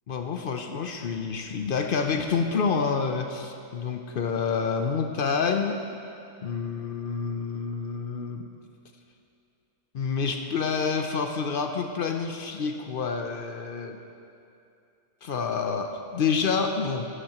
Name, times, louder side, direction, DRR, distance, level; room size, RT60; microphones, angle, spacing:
voice 1, 0.1-5.8 6.4-8.4 9.9-14.0 15.2-17.1, left 5 dB, 60° left, 5 dB, 0.6 m, -28 dB
15.0 x 11.0 x 2.9 m, 2.5 s
omnidirectional pair, 1.5 m